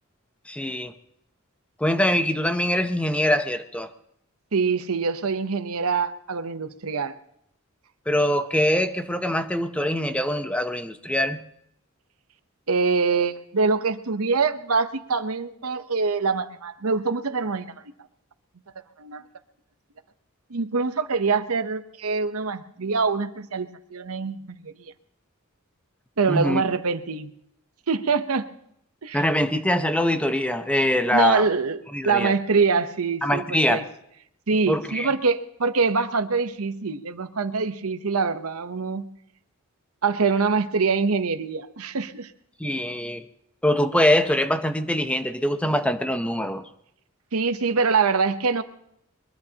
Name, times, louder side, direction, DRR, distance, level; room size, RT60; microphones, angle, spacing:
voice 1, 0.5-0.9 1.8-3.9 8.1-11.4 26.3-26.6 29.1-31.5 31.9-32.3 33.2-33.8 34.7-35.1 42.6-43.2 43.6-46.7, left 1 dB, 5° left, 9 dB, 0.7 m, -23 dB
voice 2, 4.5-7.2 12.7-17.7 19.0-19.2 20.5-24.9 26.2-27.3 27.9-28.5 29.0-29.2 31.1-31.8 32.0-33.8 34.5-39.1 40.0-42.3 47.3-48.6, right 4 dB, 85° right, 11 dB, 0.9 m, -24 dB
22.0 x 22.0 x 2.9 m, 0.75 s
head